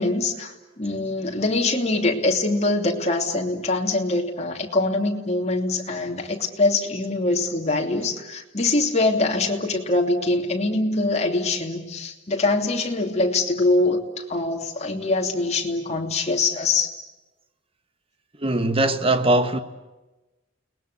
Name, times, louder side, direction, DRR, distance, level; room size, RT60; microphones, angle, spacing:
voice 1, 0.0-14.0 14.3-16.9, left 2 dB, 35° left, 3.0 m, -23 dB
voice 2, 18.4-19.6, right 2 dB, 30° right, 1.4 m, -20 dB
30.0 x 20.5 x 8.3 m
head